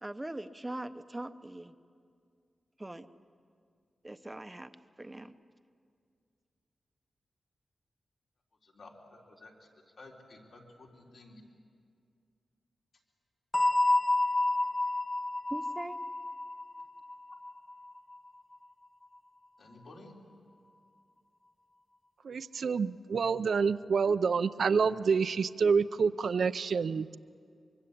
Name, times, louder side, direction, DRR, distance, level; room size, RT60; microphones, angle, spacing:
voice 1, 0.0-1.7 2.8-3.1 4.0-4.7 5.0-5.3 15.5-16.0, right 1 dB, 15° right, 10 dB, 0.8 m, -41 dB
voice 2, 8.6-9.7 10.0-11.4 19.6-20.2, left 2 dB, 65° left, -1 dB, 3.5 m, -53 dB
sound 1, 13.5-18.2, left 2 dB, 25° left, 0.8 m, -30 dB
voice 3, 22.2-27.2, right 5 dB, 65° right, 14 dB, 0.6 m, -28 dB
24.0 x 24.0 x 8.6 m, 2.3 s
wide cardioid pair, 145°, 0 cm